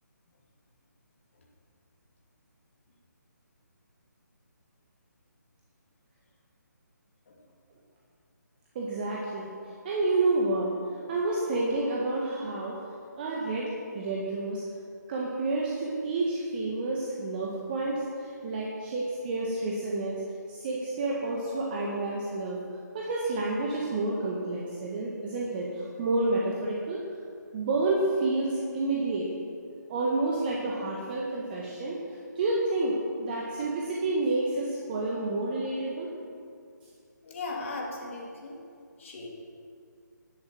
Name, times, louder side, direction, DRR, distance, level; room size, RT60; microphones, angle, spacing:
voice 1, 8.8-9.5 9.8-10.7 11.1-12.8 13.2-14.6 15.1-20.2 20.5-22.6 22.9-27.0 27.5-29.3 29.9-32.0 32.4-36.1, right 2 dB, 30° right, -4 dB, 1.7 m, -29 dB
voice 2, 37.2-38.6 39.0-39.3, left 3 dB, 40° left, -1 dB, 2.9 m, -37 dB
11.5 x 10.0 x 7.7 m, 2.3 s
figure-of-eight pair, 145°, 10 cm